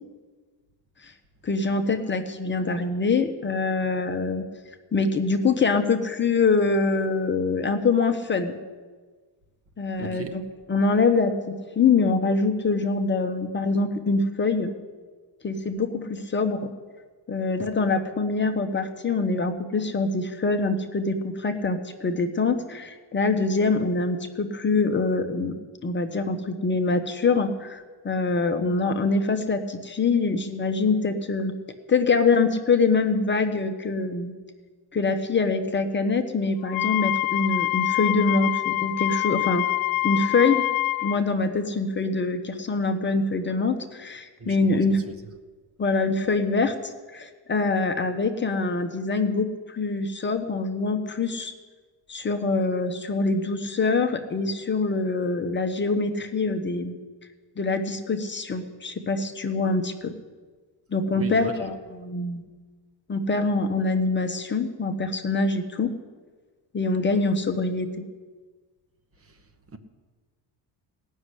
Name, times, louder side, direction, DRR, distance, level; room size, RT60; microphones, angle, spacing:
voice 1, 1.4-4.4 4.9-8.6 9.8-10.4 10.7-14.7 15.4-16.7 17.3-25.5 25.8-31.5 31.9-34.3 34.9-39.7 40.0-40.6 41.0-45.0 45.8-51.5 52.1-56.9 57.6-60.1 60.9-61.7 62.0-62.4 63.1-65.9 66.7-67.9, left 3 dB, 25° left, 0.9 m, -24 dB
voice 2, 10.0-10.4 44.4-45.1 61.1-61.7 69.2-69.4 69.7-69.8, right 2 dB, 30° right, 1.1 m, -37 dB
Wind instrument woodwind instrument, 36.7-41.2, left 18 dB, 55° left, 0.6 m, -25 dB
17.5 x 6.5 x 9.9 m
cardioid pair, 145°, 44 cm